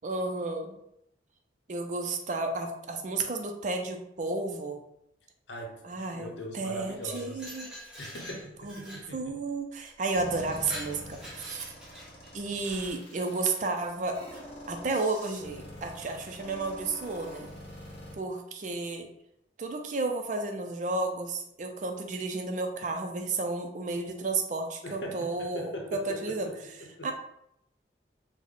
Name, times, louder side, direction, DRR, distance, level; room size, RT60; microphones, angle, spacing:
voice 1, 0.0-0.8 1.7-4.8 5.8-7.7 8.6-11.7 12.3-14.4 14.7-17.5 18.1-19.1 19.6-26.5 27.0-27.1, right 3 dB, 40° right, 4 dB, 0.4 m, -32 dB
voice 2, 5.5-7.4 8.0-9.3 24.8-27.1, equal, 75° left, 2 dB, 0.7 m, -41 dB
Glass, 6.8-9.1 9.8-9.9 10.3-12.3, equal, 5° right, 0.8 m, -45 dB
sound 1, 10.1-18.1, left 1 dB, 35° left, 1.0 m, -45 dB
3.3 x 2.1 x 3.7 m, 0.78 s
head